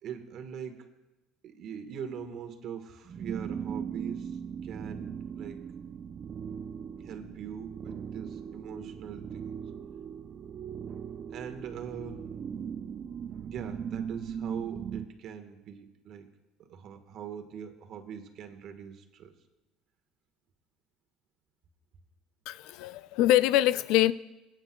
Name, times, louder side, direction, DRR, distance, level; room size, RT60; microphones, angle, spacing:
voice 1, 0.0-0.9 1.4-5.7 7.0-9.6 11.3-12.2 13.3-16.3 16.6-19.3, right 7 dB, 55° right, 6 dB, 1.3 m, -42 dB
sound 1, 3.1-15.1, right 7 dB, 35° right, 0.5 m, -39 dB
voice 2, 22.5-24.1, left 14 dB, 70° left, 16 dB, 0.4 m, -24 dB
23.0 x 9.0 x 2.3 m, 1.0 s
supercardioid pair, 115°, 0 cm